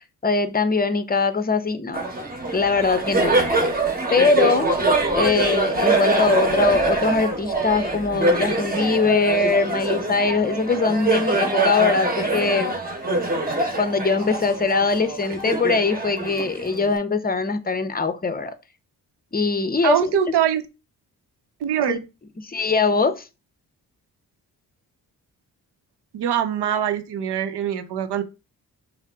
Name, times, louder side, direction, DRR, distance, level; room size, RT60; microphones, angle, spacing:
voice 1, 0.2-2.0 2.5-3.7 4.1-4.7 5.1-12.8 13.8-18.5 19.3-20.1 21.9-22.0 22.4-23.3, left 4 dB, 20° left, 0.7 m, -22 dB
Laughter, 1.9-16.9, right 2 dB, 20° right, 1.1 m, -24 dB
voice 2, 19.8-20.6 21.6-22.0 26.1-28.2, right 10 dB, 70° right, 0.7 m, -23 dB
5.5 x 2.1 x 3.5 m
supercardioid pair, 50°, 42 cm